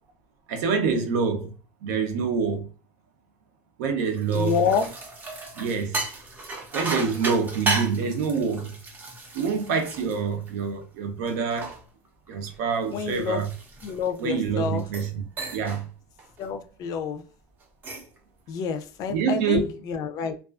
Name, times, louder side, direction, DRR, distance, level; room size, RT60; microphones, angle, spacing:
voice 1, 0.5-1.5 1.8-2.7 3.8-4.6 5.6-6.0 6.7-8.8 9.3-11.8 12.3-13.5 14.2-15.3 15.5-15.9 19.1-19.7, right 5 dB, 85° right, 0.6 m, -26 dB
sound 1, 4.0-10.8 11.3-14.3 14.8-15.1 15.4-15.8 16.2-16.5 17.6-18.2, right 2 dB, 20° right, 0.5 m, -34 dB
voice 2, 4.3-4.9 12.9-13.4 13.8-14.9 16.4-17.2 18.5-20.3, left 6 dB, 45° left, 0.4 m, -28 dB
2.3 x 2.3 x 2.3 m
cardioid pair, 150°, 9 cm